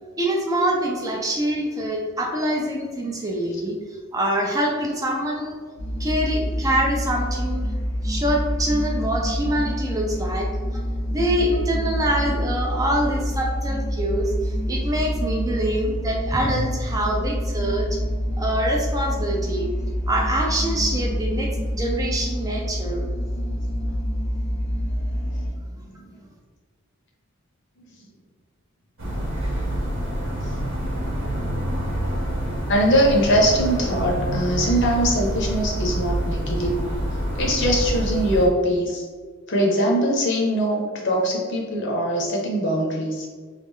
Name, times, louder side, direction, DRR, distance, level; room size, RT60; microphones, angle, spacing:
voice 1, 0.2-3.7 4.1-5.6 6.0-7.7 8.0-10.5 11.1-18.0 18.4-19.7 20.1-23.1, right 1 dB, 15° right, 0 dB, 0.4 m, -25 dB
sound 1, 5.8-25.5, equal, 85° left, 0.9 m, -27 dB
voice 2, 23.3-23.7 25.8-26.3 32.7-36.8 37.3-39.0 39.5-43.3, equal, 55° left, 0 dB, 0.7 m, -22 dB
sound 2, 29.0-38.5, right 1 dB, 60° right, 0.8 m, -26 dB
3.1 x 2.4 x 3.5 m, 1.5 s
head